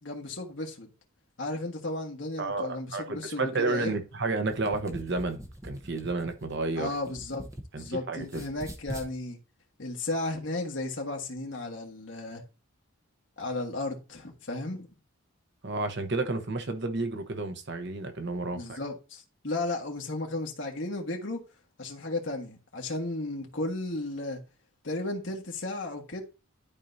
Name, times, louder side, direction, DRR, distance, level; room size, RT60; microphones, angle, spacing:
voice 1, 0.0-0.9 1.4-3.9 6.8-7.5 7.8-9.4 9.8-12.4 13.4-14.9 18.5-21.4 21.8-24.4 24.8-26.2, left 2 dB, 60° left, 1.5 m, -34 dB
voice 2, 2.4-6.9 7.7-8.4 15.6-18.8, right 3 dB, 55° right, 0.9 m, -31 dB
sound 1, 4.5-7.9 8.2-9.1, equal, 15° right, 0.9 m, -43 dB
12.0 x 4.5 x 2.7 m
head